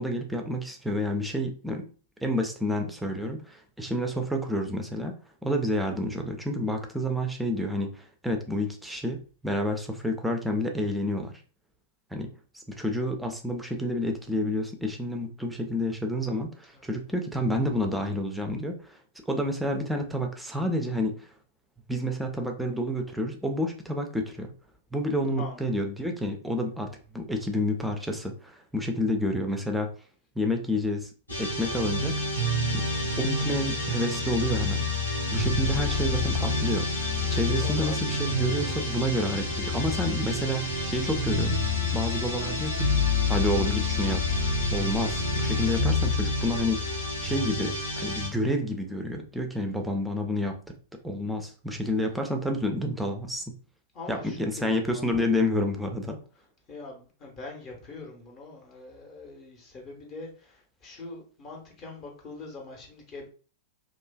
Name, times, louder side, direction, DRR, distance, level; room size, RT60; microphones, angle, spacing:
voice 1, 0.0-1.8 2.2-5.1 5.4-9.2 9.4-11.3 12.1-12.3 12.5-19.0 19.3-21.3 21.9-24.5 24.9-26.9 27.1-29.9 30.4-31.1 31.4-32.1 32.7-32.8 33.2-34.9 35.3-41.6 41.9-44.2 44.7-50.7 51.0-53.4 54.1-56.2, left 1 dB, 5° right, 3 dB, 0.4 m, -29 dB
voice 2, 25.4-25.7 37.6-38.4 53.9-55.2 56.7-63.3, left 3 dB, 30° left, 0 dB, 0.8 m, -43 dB
sound 1, 31.3-48.3, left 2 dB, 80° left, 0.9 m, -28 dB
2.6 x 2.3 x 2.2 m, 0.39 s
figure-of-eight pair, 95°, 0 cm